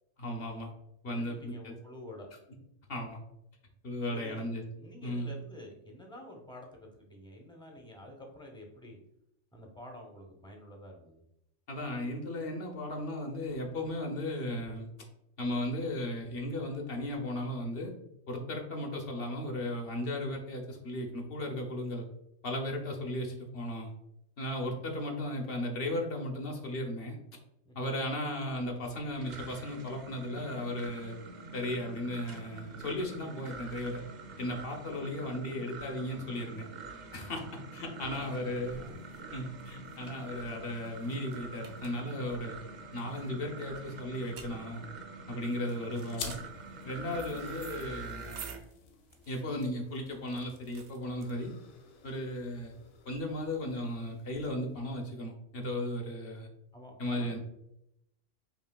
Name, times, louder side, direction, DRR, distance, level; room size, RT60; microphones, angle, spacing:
voice 1, 0.2-0.7 1.0-1.7 2.9-3.2 3.8-4.6 5.0-5.3 11.7-14.9 15.4-17.9 18.3-22.0 22.4-23.9 24.4-27.2 27.8-31.2 31.5-34.0 34.4-36.7 37.1-37.4 37.7-38.9 39.3-42.6 42.9-44.9 45.3-46.3 46.8-48.3 49.3-51.5 52.0-52.7 53.1-56.5 57.0-57.4, left 1 dB, 55° left, 2 dB, 0.9 m, -36 dB
voice 2, 1.0-2.3 4.1-9.0 9.5-11.2 27.7-27.9 38.0-39.0 47.0-47.3 56.7-57.4, left 1 dB, 5° left, 0 dB, 0.4 m, -49 dB
sound 1, 28.9-48.6, right 3 dB, 55° right, 0.5 m, -46 dB
sound 2, 37.5-51.8, right 6 dB, 70° right, 0.8 m, -53 dB
sound 3, 46.1-55.1, left 5 dB, 85° left, 1.0 m, -50 dB
5.4 x 2.8 x 2.2 m, 0.80 s
omnidirectional pair, 1.2 m